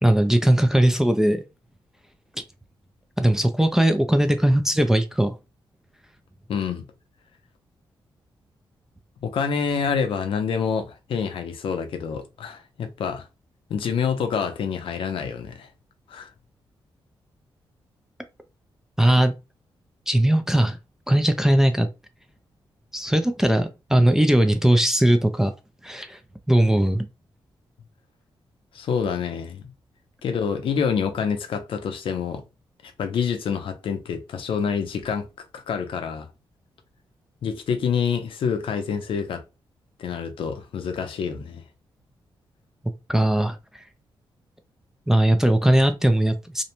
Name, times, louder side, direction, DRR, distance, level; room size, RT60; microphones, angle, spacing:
voice 1, 0.0-1.4 2.4-2.5 3.2-5.3 19.0-19.4 20.1-20.8 21.1-21.9 22.9-25.5 25.8-26.2 26.5-27.1 43.1-43.6 45.1-46.6, right 1 dB, 5° right, 0.3 m, -19 dB
voice 2, 6.5-6.9 9.2-13.3 13.7-15.7 16.1-16.3 28.7-29.7 30.2-32.4 32.8-35.3 35.5-36.3 37.4-39.4 40.0-41.6, left 6 dB, 75° left, 0.5 m, -27 dB
2.6 x 2.1 x 2.8 m
wide cardioid pair, 125°, 9 cm